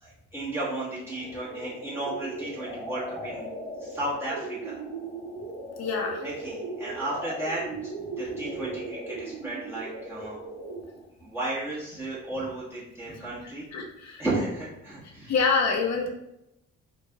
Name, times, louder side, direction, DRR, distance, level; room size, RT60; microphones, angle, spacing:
voice 1, 0.0-3.5 3.8-4.8 6.2-7.9 8.2-10.4 11.2-13.6 14.2-15.3, right 2 dB, 10° right, -9 dB, 1.2 m, -34 dB
sound 1, 1.1-11.0, right 2 dB, 60° right, 1.2 m, -37 dB
voice 2, 5.8-6.2 13.7-14.2 15.3-16.1, left 5 dB, 60° left, 1 dB, 0.9 m, -26 dB
3.3 x 2.5 x 3.4 m, 0.84 s
cardioid pair, 90°, 30 cm